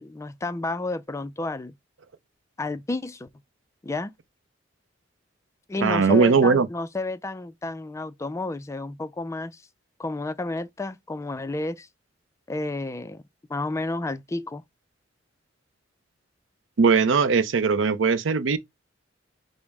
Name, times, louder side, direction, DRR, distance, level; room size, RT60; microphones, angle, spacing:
voice 1, 0.0-1.7 2.6-3.3 3.8-4.1 5.7-9.6 10.0-11.9 12.5-13.2 13.5-14.6, left 2 dB, 15° left, 0.3 m, -31 dB
voice 2, 5.8-6.7 16.8-18.6, right 5 dB, 80° right, 0.5 m, -19 dB
5.2 x 2.0 x 4.6 m
head